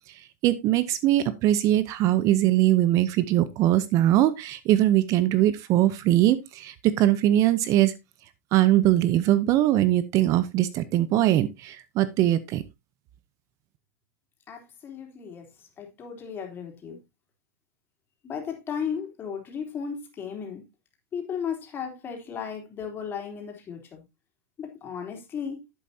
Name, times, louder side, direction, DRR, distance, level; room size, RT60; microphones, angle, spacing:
voice 1, 0.4-7.9 8.5-12.6, right 13 dB, 40° right, 0.8 m, -21 dB
voice 2, 14.5-15.4 15.8-17.0 18.2-20.6 21.1-24.0 24.6-25.6, left 7 dB, 25° left, 3.3 m, -35 dB
11.5 x 8.5 x 2.8 m
supercardioid pair, 135°, 8 cm